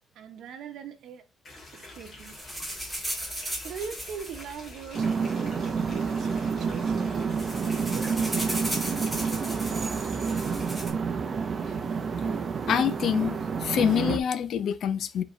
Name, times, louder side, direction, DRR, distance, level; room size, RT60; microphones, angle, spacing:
voice 1, 0.1-1.3 1.7-2.4 3.6-7.1 7.5-10.4, right 7 dB, 70° right, 1.0 m, -43 dB
sound 1, 1.4-10.7, left 2 dB, 35° left, 2.9 m, -47 dB
sound 2, 2.2-5.4 6.2-6.3 6.6-6.8 7.1-10.9, equal, ahead, 2.3 m, -36 dB
sound 3, 4.9-14.2, right 5 dB, 35° right, 0.7 m, -29 dB
voice 2, 12.7-15.2, left 8 dB, 60° left, 0.6 m, -26 dB
7.4 x 4.1 x 3.2 m
cardioid pair, 150°, 0 cm